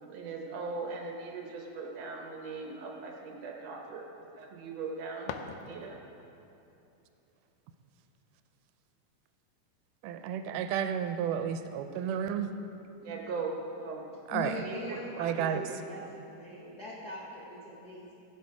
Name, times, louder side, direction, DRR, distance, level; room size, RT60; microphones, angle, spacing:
voice 1, 0.0-4.0 4.4-6.0 13.0-13.5 13.8-14.0 14.6-15.8, right 4 dB, 65° right, 0 dB, 1.8 m, -39 dB
sound 1, 5.2-6.2, left 7 dB, 90° left, 2.3 m, -44 dB
voice 2, 10.0-12.5 14.3-14.5 15.2-15.6, right 8 dB, 80° right, 8 dB, 2.1 m, -32 dB
voice 3, 14.3-18.1, left 2 dB, 75° left, -5 dB, 0.9 m, -42 dB
16.0 x 6.5 x 4.8 m, 2.9 s
omnidirectional pair, 3.8 m